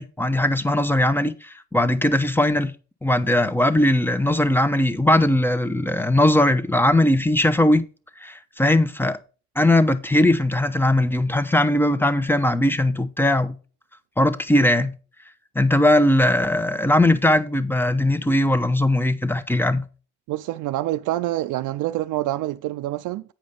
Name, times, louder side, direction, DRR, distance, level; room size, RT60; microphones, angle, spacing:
voice 1, 0.0-2.7 3.0-7.8 8.2-9.2 9.6-13.5 14.2-14.9 15.5-19.8, left 1 dB, 5° left, 0.8 m, -19 dB
voice 2, 20.3-23.2, right 15 dB, 85° right, 0.5 m, -26 dB
8.8 x 5.1 x 5.4 m
cardioid pair, 90°, 30 cm